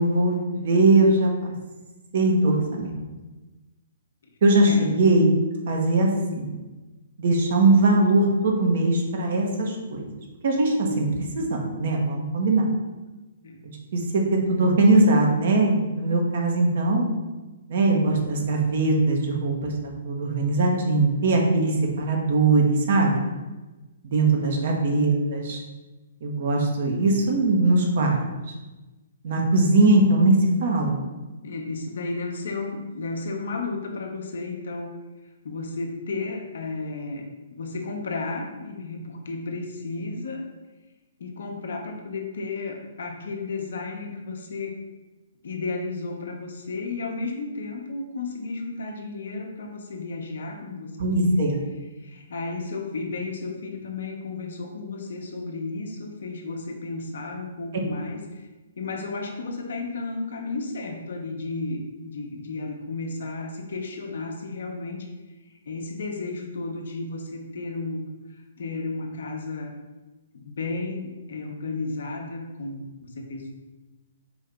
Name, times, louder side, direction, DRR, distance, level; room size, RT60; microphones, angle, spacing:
voice 1, 0.0-1.5 2.1-2.9 4.4-5.3 5.7-6.1 6.4-6.5 7.2-10.0 10.4-11.1 11.3-12.6 13.9-17.0 17.7-19.7 20.0-23.2 24.0-25.6 26.2-28.2 29.2-31.0 51.0-51.6, right 2 dB, 55° right, 1 dB, 0.9 m, -21 dB
voice 2, 24.3-24.7 31.4-35.0 35.4-37.3 37.5-40.5 41.2-44.8 45.4-51.4 52.0-58.5 58.8-65.1 65.4-68.1 68.6-69.7 70.3-73.5, left 3 dB, 65° left, 2 dB, 0.7 m, -33 dB
4.4 x 2.8 x 3.4 m, 1.1 s
figure-of-eight pair, 125°, 0 cm